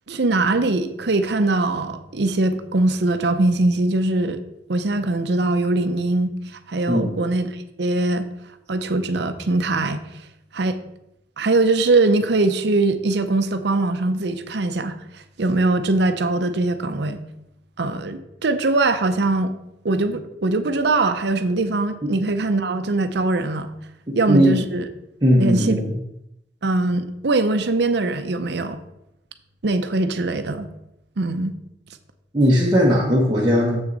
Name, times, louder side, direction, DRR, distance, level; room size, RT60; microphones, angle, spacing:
voice 1, 0.1-4.4 4.7-6.4 6.7-8.3 8.7-10.0 10.5-10.8 11.4-15.0 15.4-17.2 17.8-19.5 19.8-23.7 24.1-24.9 25.4-25.8 26.6-28.8 29.6-30.7 31.2-31.5, right 2 dB, 65° right, 10 dB, 0.6 m, -21 dB
voice 2, 24.1-24.6 25.2-25.9 32.3-33.8, equal, 25° right, -5 dB, 1.0 m, -18 dB
7.2 x 6.3 x 4.0 m, 0.83 s
head